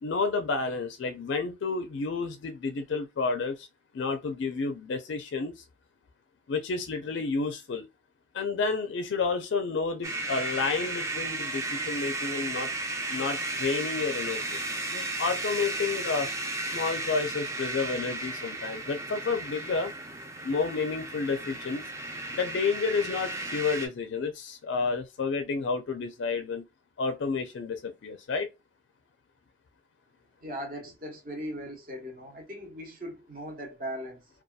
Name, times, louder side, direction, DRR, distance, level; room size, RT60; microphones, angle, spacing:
voice 1, 0.0-3.7 3.9-5.6 6.5-7.9 8.3-12.7 13.1-14.6 14.9-16.3 16.7-19.9 20.4-21.8 22.3-26.6 27.0-28.5, left 4 dB, 65° left, 0.4 m, -30 dB
sound 1, 10.0-23.9, right 2 dB, 15° right, 0.4 m, -34 dB
voice 2, 30.4-34.3, equal, 45° right, 0.9 m, -39 dB
2.6 x 2.3 x 2.3 m
head